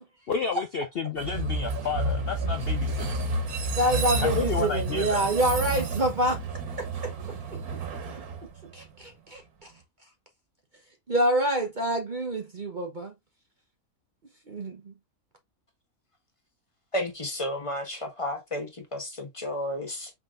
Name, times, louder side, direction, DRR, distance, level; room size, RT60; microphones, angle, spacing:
voice 1, 0.3-3.2 4.2-5.3, left 5 dB, 55° left, 0.7 m, -31 dB
Train, 1.2-9.1, right 2 dB, 90° right, 1.6 m, -30 dB
voice 2, 3.8-6.4 6.8-7.1 7.5-7.6 8.7-9.7 11.1-13.1 14.5-14.9, right 1 dB, 40° right, 0.8 m, -27 dB
voice 3, 16.9-20.1, left 1 dB, 25° left, 1.2 m, -32 dB
5.6 x 3.6 x 2.5 m
omnidirectional pair, 1.5 m